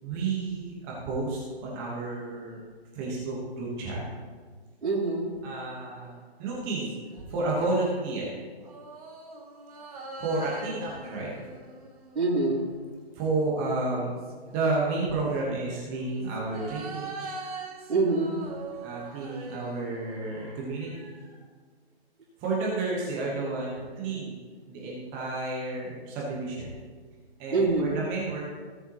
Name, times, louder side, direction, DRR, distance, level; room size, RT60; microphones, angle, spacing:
voice 1, 0.0-2.6 2.9-4.0 5.4-6.1 6.4-6.9 7.3-8.3 10.2-11.5 13.1-14.2 14.5-17.4 18.8-21.4 22.4-24.3 24.7-26.7 27.4-28.4, right 3 dB, 15° right, -4 dB, 1.2 m, -31 dB
voice 2, 4.8-5.3 12.1-12.7 17.9-18.4 27.5-28.0, right 3 dB, 80° right, -10 dB, 3.3 m, -25 dB
sound 1, 6.5-7.7 8.6-13.1 13.8-15.0 15.9-20.5 20.9-21.0, right 3 dB, 35° right, 1.6 m, -43 dB
17.0 x 7.0 x 3.0 m, 1.5 s
hypercardioid pair, 165°, 32 cm